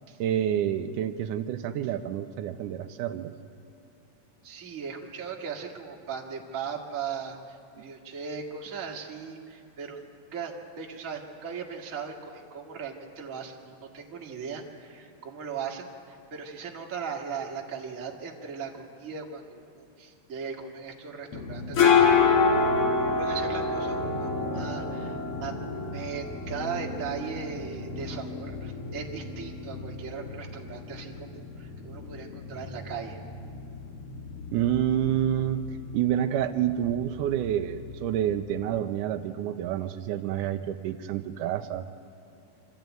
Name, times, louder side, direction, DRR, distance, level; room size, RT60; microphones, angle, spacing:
voice 1, 0.2-3.3 34.5-35.6 35.9-41.9, right 11 dB, 80° right, 8 dB, 2.2 m, -28 dB
voice 2, 4.4-22.1 23.0-33.2, right 6 dB, 30° right, 0 dB, 1.8 m, -38 dB
sound 1, 21.3-38.8, left 4 dB, 50° left, 2.0 m, -29 dB
25.5 x 14.0 x 9.2 m, 2.4 s
omnidirectional pair, 3.7 m